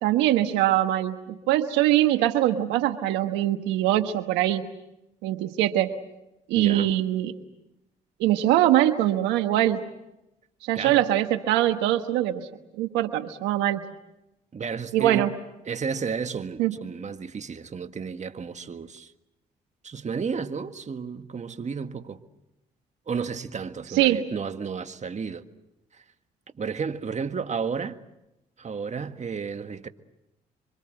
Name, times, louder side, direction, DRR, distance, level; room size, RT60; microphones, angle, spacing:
voice 1, 0.0-4.6 5.2-5.9 6.5-7.4 8.2-9.8 10.6-12.5 12.8-13.8 14.9-15.3 16.6-16.8 23.9-24.2, right 13 dB, 90° right, 1.3 m, -22 dB
voice 2, 6.5-6.9 10.7-11.0 14.5-15.3 15.6-19.1 19.8-22.2 23.1-25.4 26.6-28.0 28.6-29.9, right 5 dB, 40° right, 1.7 m, -32 dB
27.5 x 25.0 x 7.8 m
supercardioid pair, 60°, 18 cm